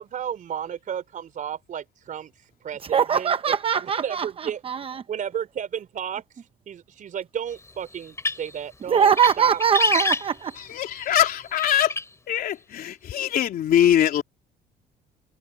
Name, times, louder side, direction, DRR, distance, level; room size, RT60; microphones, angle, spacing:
voice 1, 0.0-2.3 2.6-3.5 3.8-4.6 5.1-6.2 6.7-9.1 9.4-9.6, right 9 dB, 50° right, 4.1 m, -32 dB
voice 2, 2.8-5.0 8.9-10.5, right 7 dB, 35° right, 0.7 m, -22 dB
sound 1, 8.0-8.6 9.0-9.4 9.6-10.7 11.9-12.0, left 3 dB, 15° left, 4.1 m, -25 dB
voice 3, 10.7-12.0 12.3-14.2, left 11 dB, 60° left, 3.2 m, -22 dB
cardioid pair, 110°, 17 cm